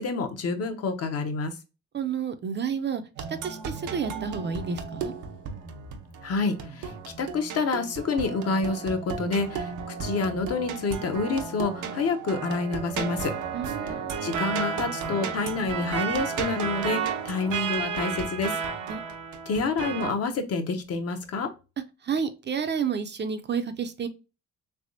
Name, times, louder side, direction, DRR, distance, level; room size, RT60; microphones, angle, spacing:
voice 1, 0.0-1.5 6.2-6.9 7.2-9.7 10.0-13.3 13.8-18.5 19.5-21.5, left 4 dB, 55° left, 0.8 m, -28 dB
voice 2, 1.9-3.0 3.3-5.1 13.5-14.1 18.9-19.0 22.0-24.1, right 6 dB, 35° right, 0.5 m, -30 dB
sound 1, 3.2-20.1, right 6 dB, 80° right, 0.7 m, -33 dB
3.4 x 3.2 x 2.5 m
cardioid pair, 90°, 30 cm